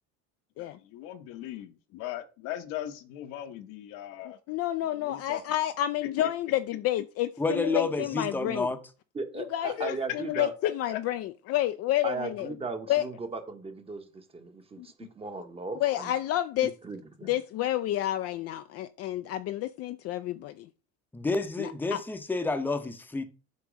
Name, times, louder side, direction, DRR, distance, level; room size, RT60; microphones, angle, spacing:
voice 1, 0.6-4.4 4.9-5.4 6.0-6.3 9.8-11.0 14.8-15.1, left 12 dB, 75° left, 1.1 m, -39 dB
voice 2, 4.5-8.7 9.5-12.5 12.9-13.0 15.8-16.7 17.2-20.7 21.6-22.0, left 13 dB, 50° left, 0.5 m, -29 dB
voice 3, 7.4-8.8 21.1-23.2, left 3 dB, 5° left, 0.8 m, -29 dB
voice 4, 9.1-10.5 12.0-16.1 16.8-17.3, right 4 dB, 20° right, 1.0 m, -37 dB
8.2 x 3.0 x 6.3 m
cardioid pair, 130°, 31 cm